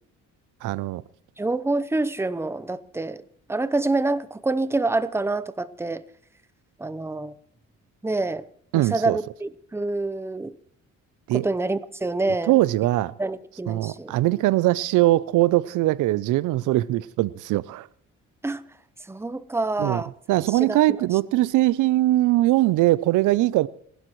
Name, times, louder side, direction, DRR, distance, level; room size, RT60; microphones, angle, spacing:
voice 1, 0.6-1.0 8.7-9.2 11.3-11.4 12.5-13.1 13.7-17.9 19.8-20.0 20.3-23.7, right 16 dB, 85° right, 0.6 m, -21 dB
voice 2, 1.4-3.2 3.5-6.0 6.8-7.3 8.0-8.5 8.7-10.6 11.3-12.6 13.2-14.1 18.4-18.6 19.0-20.1 20.5-21.1, right 2 dB, 10° right, 0.8 m, -27 dB
28.0 x 12.0 x 3.1 m
cardioid pair, 90°, 30 cm